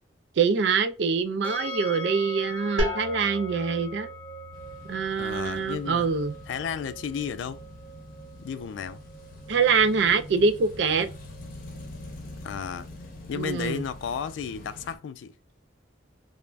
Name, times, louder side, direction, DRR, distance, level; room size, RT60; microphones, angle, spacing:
voice 1, 0.4-4.1 4.9-6.3 9.5-11.1 13.3-13.8, right 5 dB, 65° right, 0.4 m, -24 dB
sound 1, 1.4-14.4, equal, 10° left, 0.9 m, -43 dB
sound 2, 2.8-8.3, equal, 90° right, 0.7 m, -36 dB
sound 3, 4.5-15.0, left 1 dB, 50° left, 0.7 m, -45 dB
voice 2, 5.2-6.1 6.5-7.6 8.4-9.0 12.4-12.9 13.3-15.3, left 7 dB, 75° left, 0.3 m, -33 dB
3.3 x 2.0 x 2.4 m
head